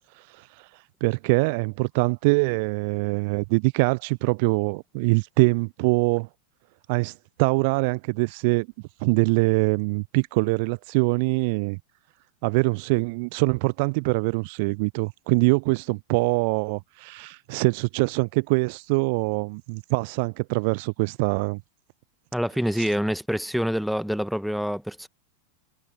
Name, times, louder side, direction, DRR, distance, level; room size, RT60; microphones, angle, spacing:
voice 1, 0.1-6.3 6.9-8.7 9.0-11.8 12.4-21.6 22.8-22.9, right 29 dB, 45° right, 0.3 m, -24 dB
voice 2, 22.3-25.1, equal, ahead, 1.5 m, -26 dB
figure-of-eight pair, 90°, 0 cm